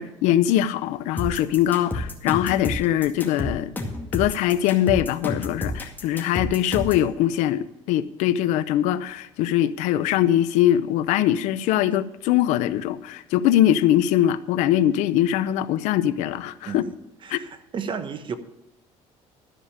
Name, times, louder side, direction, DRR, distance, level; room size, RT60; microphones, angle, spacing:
voice 1, 0.0-3.7 4.1-16.8 17.3-17.4, left 12 dB, 85° left, 0.6 m, -22 dB
sound 1, 1.2-7.1, left 2 dB, 15° left, 2.1 m, -30 dB
voice 2, 17.2-18.4, right 6 dB, 45° right, 1.1 m, -33 dB
13.0 x 5.0 x 8.7 m
cardioid pair, 105°, 12 cm